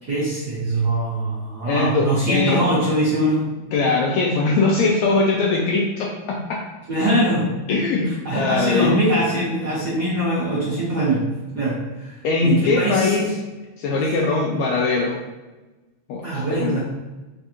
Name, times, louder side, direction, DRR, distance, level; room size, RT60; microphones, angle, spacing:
voice 1, 0.1-3.5 6.9-7.5 8.2-11.2 11.5-13.1 16.2-16.8, right 1 dB, 80° right, -8 dB, 0.9 m, -22 dB
voice 2, 1.7-2.7 3.7-6.6 7.7-9.0 12.2-13.3 13.8-15.2 16.1-16.8, left 3 dB, 80° left, -1 dB, 1.6 m, -21 dB
4.8 x 3.3 x 2.8 m, 1.1 s
omnidirectional pair, 3.6 m